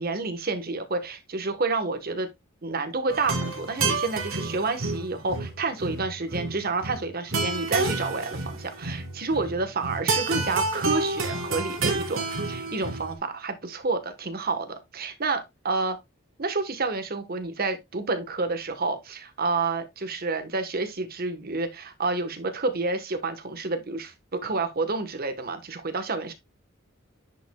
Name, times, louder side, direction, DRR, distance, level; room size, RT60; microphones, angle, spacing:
voice 1, 0.0-2.3 2.6-15.4 15.6-16.0 16.4-26.3, right 3 dB, 45° right, 1.2 m, -29 dB
sound 1, 3.1-13.2, right 3 dB, 65° right, 2.1 m, -29 dB
10.0 x 5.3 x 2.3 m
head